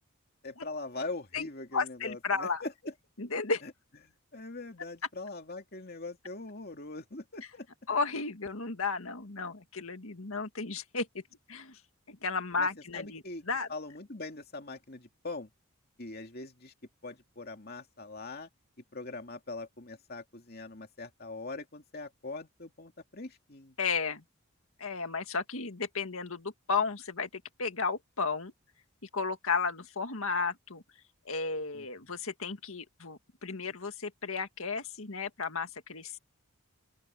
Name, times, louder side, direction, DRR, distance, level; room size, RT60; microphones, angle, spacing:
voice 1, 0.4-2.7 4.3-7.7 12.6-12.7 12.9-13.4 13.7-15.5 16.0-16.7 17.0-18.5 18.9-23.7 31.7-31.8, left 3 dB, 45° left, 2.6 m, -42 dB
voice 2, 1.3-2.6 3.2-3.6 7.9-11.2 11.5-11.8 12.1-13.7 23.8-24.2 24.8-27.3 27.6-28.5 29.1-30.8 31.3-36.2, left 4 dB, 70° left, 1.9 m, -33 dB
open air
head